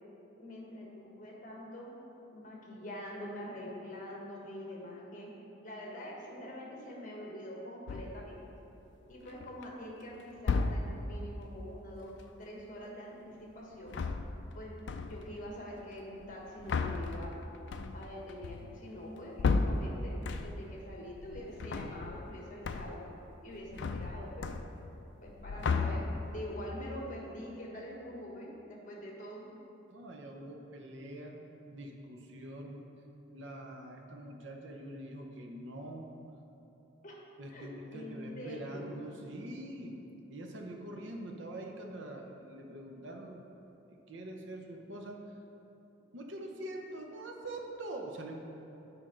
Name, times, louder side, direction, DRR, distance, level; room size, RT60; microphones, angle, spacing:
voice 1, 0.4-1.9 2.3-5.3 5.6-8.4 9.1-14.0 14.5-14.8 15.0-17.4 17.9-23.0 23.4-24.6 25.2-29.5 37.0-37.2 37.5-39.1, equal, 40° left, -3 dB, 1.3 m, -45 dB
sound 1, 7.9-8.3 9.1-9.7 10.4-11.2 13.7-14.6 14.9-15.4 16.2-20.8 21.1-22.4 22.6-23.1 23.4-25.0 25.3-26.4, left 4 dB, 60° left, 0.3 m, -34 dB
voice 2, 29.9-31.4 31.7-32.9 33.3-36.1 37.4-40.0 40.3-43.4 43.9-45.2 46.1-48.4, right 1 dB, 65° right, 1 dB, 0.7 m, -44 dB
8.6 x 4.4 x 5.0 m, 3.0 s
head